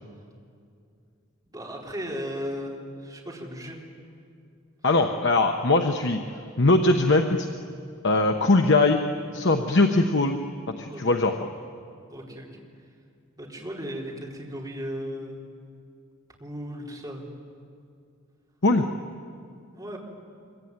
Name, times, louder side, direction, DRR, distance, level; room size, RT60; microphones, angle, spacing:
voice 1, 1.5-3.8 10.9-11.0 12.1-12.6 13.4-15.4 16.4-17.2 19.7-20.0, equal, 20° right, -3 dB, 4.3 m, -36 dB
voice 2, 4.8-6.2 6.6-7.5 8.0-9.0 9.3-10.4 10.7-11.3 18.6-18.9, left 2 dB, 60° left, 4 dB, 1.1 m, -21 dB
25.5 x 23.5 x 9.6 m, 2.4 s
head